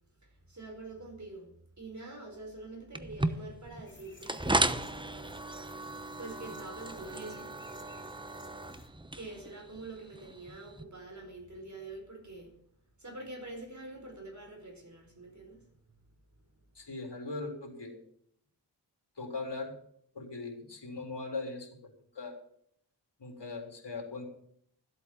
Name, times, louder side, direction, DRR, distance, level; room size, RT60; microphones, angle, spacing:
voice 1, 0.2-5.0 6.1-7.6 8.6-12.6 13.0-15.6, right 2 dB, 40° right, 4.9 m, -46 dB
sound 1, 2.9-10.8, right 1 dB, 10° right, 0.9 m, -36 dB
sound 2, 3.8-8.9, left 2 dB, 25° left, 2.1 m, -57 dB
voice 2, 16.7-18.0 19.2-19.7 20.1-21.7 22.1-22.4 23.2-24.2, left 3 dB, 70° left, 3.8 m, -39 dB
14.0 x 8.3 x 7.3 m
cardioid pair, 50°, 42 cm